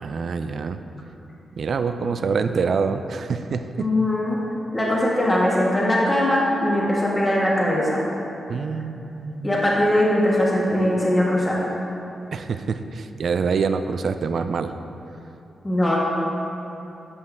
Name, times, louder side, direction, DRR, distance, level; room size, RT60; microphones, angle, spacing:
voice 1, 0.0-0.8 1.6-3.9 8.5-9.5 12.3-14.7, right 5 dB, 65° right, 9 dB, 0.3 m, -26 dB
voice 2, 3.8-4.4 4.7-8.0 9.4-11.6 15.6-16.0, left 1 dB, 20° left, -5 dB, 1.4 m, -20 dB
8.2 x 5.3 x 3.5 m, 2.9 s
supercardioid pair, 40°, 0 cm